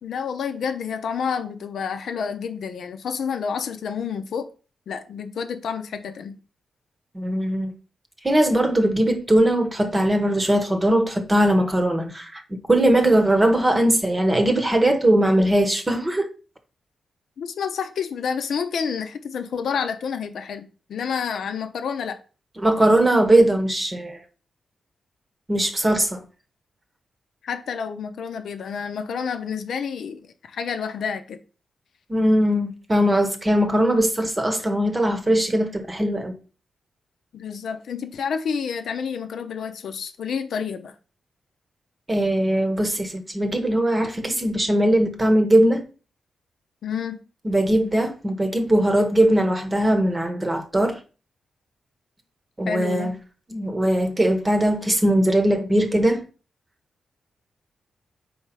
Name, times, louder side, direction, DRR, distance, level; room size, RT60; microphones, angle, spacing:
voice 1, 0.0-4.5 4.9-6.4 17.4-22.2 27.4-31.4 37.3-40.9 46.8-47.2 52.6-53.1, left 6 dB, 75° left, 0.7 m, -29 dB
voice 2, 7.1-7.7 8.2-12.4 12.7-16.3 22.6-24.2 25.5-26.2 32.1-36.3 42.1-45.9 47.4-51.0 52.6-53.1 53.5-56.2, right 1 dB, 20° right, 1.0 m, -20 dB
4.7 x 4.3 x 5.7 m
wide cardioid pair, 125°, 0 cm